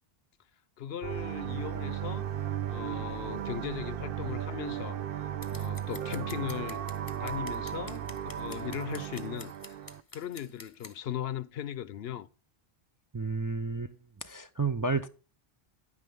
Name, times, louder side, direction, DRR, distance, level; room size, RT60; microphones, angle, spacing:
voice 1, 0.8-2.3 2.7-6.8 7.2-12.3, left 10 dB, 75° left, 0.9 m, -38 dB
sound 1, 1.0-10.0, right 10 dB, 65° right, 0.8 m, -35 dB
Scissors, 5.4-10.9, left 3 dB, 20° left, 0.8 m, -48 dB
voice 2, 13.1-13.9 14.2-15.1, right 4 dB, 30° right, 0.4 m, -31 dB
10.0 x 9.7 x 3.5 m
omnidirectional pair, 1.0 m